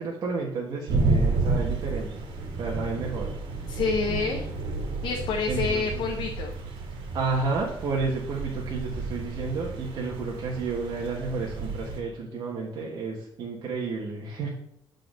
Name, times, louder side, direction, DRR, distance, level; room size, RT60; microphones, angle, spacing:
voice 1, 0.0-2.1 2.6-3.3 5.5-5.8 7.1-14.5, right 4 dB, 50° right, -4 dB, 1.3 m, -31 dB
sound 1, 0.9-12.0, right 3 dB, 75° right, 1.7 m, -31 dB
voice 2, 3.7-4.5 5.0-6.5, left 4 dB, 65° left, 2 dB, 0.9 m, -28 dB
8.5 x 3.9 x 5.1 m, 0.71 s
cardioid pair, 180°, 9 cm